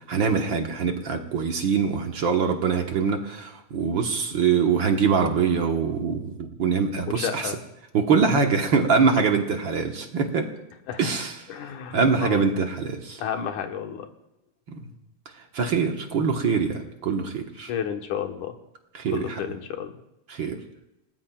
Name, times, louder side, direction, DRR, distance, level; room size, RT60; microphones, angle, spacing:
voice 1, 0.1-7.5 7.9-10.5 11.0-11.4 11.9-13.2 15.5-17.7 18.9-19.4 20.3-20.6, right 5 dB, 55° right, 3 dB, 1.5 m, -23 dB
voice 2, 7.1-7.6 9.2-9.3 10.9-11.1 11.5-12.5 13.2-14.1 17.7-18.6 19.1-20.0, left 8 dB, 80° left, 5 dB, 2.7 m, -31 dB
30.0 x 19.0 x 2.4 m, 0.91 s
omnidirectional pair, 3.5 m